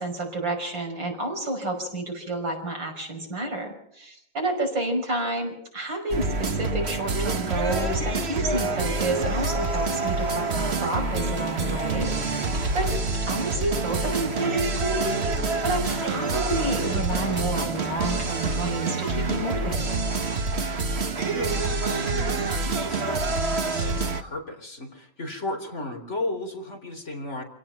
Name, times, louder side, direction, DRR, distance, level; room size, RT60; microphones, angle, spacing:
voice 1, 0.0-12.9 13.3-20.0, right 1 dB, 70° right, 3 dB, 6.2 m, -30 dB
sound 1, 6.1-24.2, right 3 dB, 35° right, 1.5 m, -27 dB
sound 2, 11.1-19.1, equal, 5° right, 2.1 m, -40 dB
voice 2, 21.3-27.4, left 2 dB, 35° left, 4 dB, 4.1 m, -35 dB
27.5 x 17.5 x 5.9 m, 0.72 s
omnidirectional pair, 2.1 m